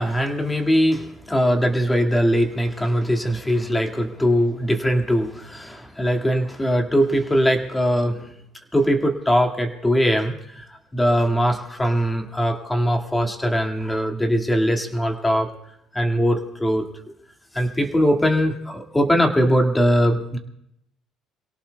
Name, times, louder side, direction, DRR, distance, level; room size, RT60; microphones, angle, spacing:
voice 1, 0.0-8.2 8.7-10.7 10.9-15.5 15.9-16.9 17.5-20.4, equal, 10° left, 2 dB, 2.0 m, -21 dB
27.5 x 17.5 x 2.3 m, 0.78 s
cardioid pair, 115°, 0 cm